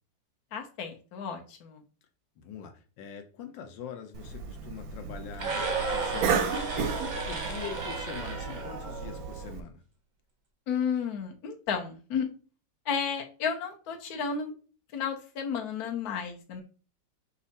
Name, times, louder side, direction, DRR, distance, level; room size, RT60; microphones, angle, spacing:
voice 1, 0.5-1.8 10.7-12.3 12.9-14.5 14.9-16.6, left 6 dB, 60° left, 1.2 m, -32 dB
voice 2, 2.4-5.6 5.9-9.8, left 7 dB, 80° left, 1.4 m, -43 dB
Cough, 4.1-9.6, right 6 dB, 70° right, 0.9 m, -34 dB
sound 1, 5.3-9.5, right 3 dB, 40° right, 0.7 m, -34 dB
5.4 x 2.4 x 4.0 m
omnidirectional pair, 2.0 m